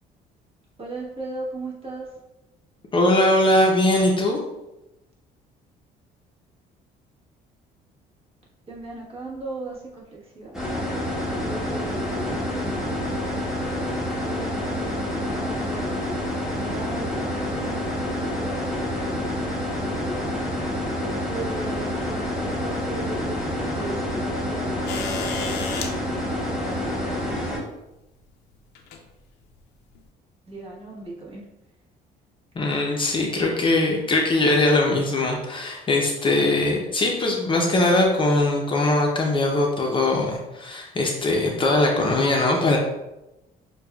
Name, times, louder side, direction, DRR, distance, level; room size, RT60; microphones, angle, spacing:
voice 1, 0.8-2.1 8.7-10.5 11.4-13.6 14.1-19.5 20.7-25.7 26.2-27.5 30.5-31.4, right 2 dB, 35° right, -3 dB, 1.2 m, -37 dB
voice 2, 2.9-4.4 32.5-42.8, left 2 dB, 30° left, 0 dB, 0.6 m, -21 dB
sound 1, 10.5-27.6, left 1 dB, 5° right, 1.0 m, -28 dB
sound 2, 24.9-25.9 27.3-27.4 28.7-29.0 30.0-30.1, left 5 dB, 85° left, 0.6 m, -31 dB
6.4 x 2.3 x 2.3 m, 0.95 s
cardioid pair, 110°, 17 cm